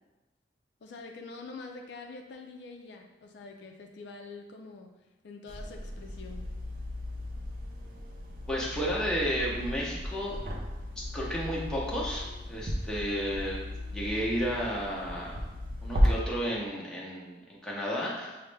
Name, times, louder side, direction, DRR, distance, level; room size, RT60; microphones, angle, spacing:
voice 1, 0.8-4.9 5.2-6.5, left 3 dB, 65° left, 3 dB, 0.4 m, -45 dB
sound 1, 5.5-16.1, equal, 45° right, 0.5 m, -35 dB
voice 2, 8.5-10.4 11.1-13.6 13.9-15.4 15.8-18.4, equal, 5° left, -6 dB, 0.7 m, -32 dB
5.5 x 2.1 x 3.2 m, 1.1 s
head